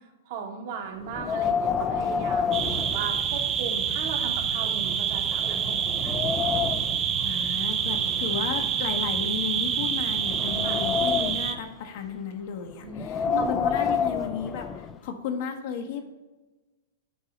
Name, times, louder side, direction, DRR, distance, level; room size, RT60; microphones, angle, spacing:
voice 1, 0.3-6.3 10.6-10.8 12.8-13.0 13.3-13.6, right 5 dB, 55° right, 3 dB, 1.1 m, -37 dB
Wind, 1.1-3.7 4.1-4.2 4.8-4.9 5.4-7.0 7.9-9.4 10.0-11.6 12.9-15.0, left 6 dB, 25° left, 0.3 m, -29 dB
sound 1, 2.5-11.5, right 7 dB, 30° right, 0.6 m, -27 dB
voice 2, 7.2-16.0, left 6 dB, 55° left, 5 dB, 0.9 m, -34 dB
8.3 x 2.8 x 5.1 m, 1.1 s
hypercardioid pair, 110°, 0 cm